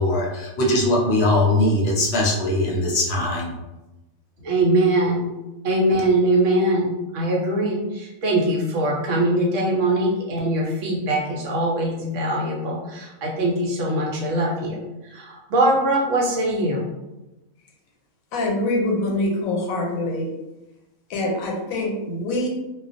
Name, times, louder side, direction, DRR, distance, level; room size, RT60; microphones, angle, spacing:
voice 1, 0.0-3.5, left 1 dB, 60° left, -2 dB, 0.8 m, -20 dB
voice 2, 4.4-5.3 5.6-16.9, right 1 dB, 70° right, -2 dB, 0.9 m, -22 dB
voice 3, 18.3-20.3 21.1-22.5, left 1 dB, 90° left, 0 dB, 1.0 m, -24 dB
2.3 x 2.1 x 2.5 m, 1.0 s
omnidirectional pair, 1.4 m